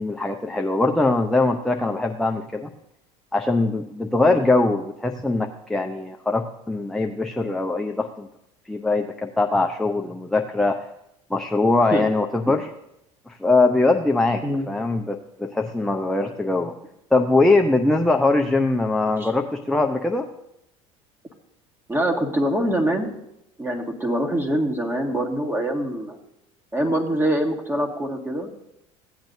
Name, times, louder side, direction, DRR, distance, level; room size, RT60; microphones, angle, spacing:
voice 1, 0.0-2.7 3.3-8.3 8.7-10.9 11.3-12.7 13.3-16.7 17.1-20.3, left 2 dB, 5° left, 3 dB, 0.7 m, -22 dB
voice 2, 21.9-23.1 23.6-26.2 26.7-28.5, right 1 dB, 15° right, 1 dB, 1.9 m, -24 dB
16.0 x 8.8 x 2.7 m, 0.82 s
hypercardioid pair, 80°, 16 cm